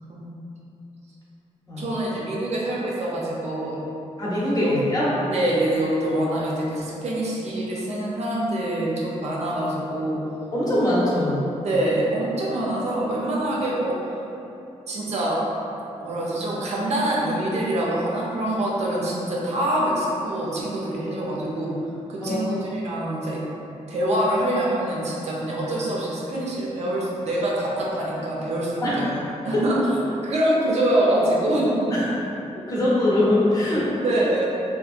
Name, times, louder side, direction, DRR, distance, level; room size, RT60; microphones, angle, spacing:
voice 1, 1.8-3.8 4.6-4.7 5.3-10.2 11.6-14.0 14.9-15.4 16.0-21.8 22.1-23.4 23.9-29.2 29.4-29.8 30.2-31.9 34.0-34.5, right 1 dB, 60° right, -5 dB, 0.5 m, -25 dB
voice 2, 4.2-5.1 10.5-11.5 22.2-22.7 28.8-29.7 31.9-32.0 32.6-33.9, left 1 dB, 30° left, -8 dB, 0.8 m, -23 dB
2.8 x 2.6 x 2.4 m, 2.9 s
cardioid pair, 105°, 13 cm